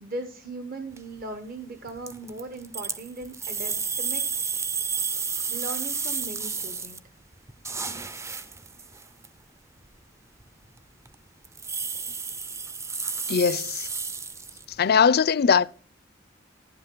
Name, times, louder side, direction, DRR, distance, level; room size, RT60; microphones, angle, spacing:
voice 1, 0.0-4.5 5.5-7.0, right 2 dB, 50° right, 1.0 m, -38 dB
sound 1, 0.9-1.2 1.9-7.0 7.3-9.3 9.8-9.9 10.4-10.8 11.0-11.1 11.4-14.8, right 5 dB, 15° right, 0.4 m, -32 dB
voice 2, 13.3-13.9 14.8-15.7, left 6 dB, 55° left, 0.4 m, -20 dB
11.5 x 8.0 x 3.7 m
head